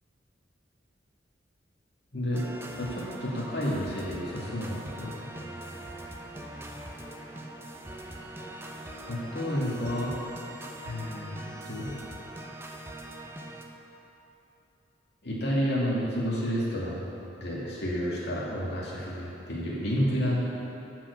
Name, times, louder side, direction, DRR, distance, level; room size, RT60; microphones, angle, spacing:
voice 1, 2.1-2.5 2.8-5.1 9.1-10.1 10.8-11.3 11.7-11.9 15.2-17.0 17.4-20.4, equal, 65° left, -6 dB, 2.5 m, -30 dB
sound 1, 2.3-13.6, right 1 dB, 15° right, 0.8 m, -42 dB
13.0 x 6.1 x 6.8 m, 2.9 s
head